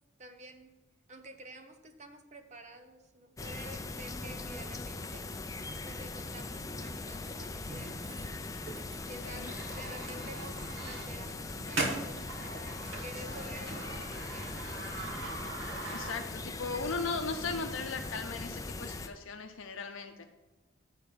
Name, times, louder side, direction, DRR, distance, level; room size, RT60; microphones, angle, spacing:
voice 1, 0.2-0.8 1.1-5.3 5.8-8.1 9.1-12.4 13.0-15.0, right 1 dB, 35° right, 7 dB, 0.7 m, -50 dB
sound 1, 3.4-19.1, left 3 dB, 15° left, 0.4 m, -40 dB
sound 2, 7.7-16.5, right 2 dB, 70° right, 2.2 m, -41 dB
voice 2, 15.9-20.2, left 4 dB, 75° left, 5 dB, 0.6 m, -37 dB
8.5 x 4.6 x 7.0 m, 1.2 s
head